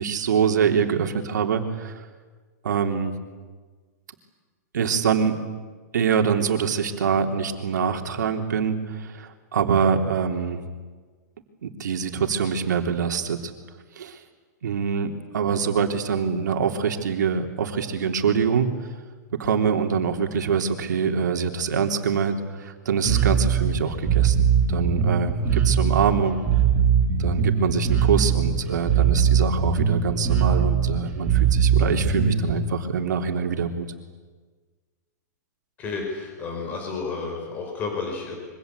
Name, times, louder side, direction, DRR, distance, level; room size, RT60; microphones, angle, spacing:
voice 1, 0.0-1.9 2.6-3.1 4.7-5.4 5.9-10.6 11.6-13.5 14.0-14.2 14.6-18.7 19.4-26.4 27.2-33.9, right 6 dB, 80° right, 4 dB, 3.5 m, -24 dB
Bass guitar, 23.1-32.5, right 7 dB, 15° right, 3.8 m, -21 dB
voice 2, 35.8-38.4, left 4 dB, 15° left, 2 dB, 5.1 m, -31 dB
27.0 x 24.5 x 8.4 m, 1.4 s
hypercardioid pair, 175°, 10 cm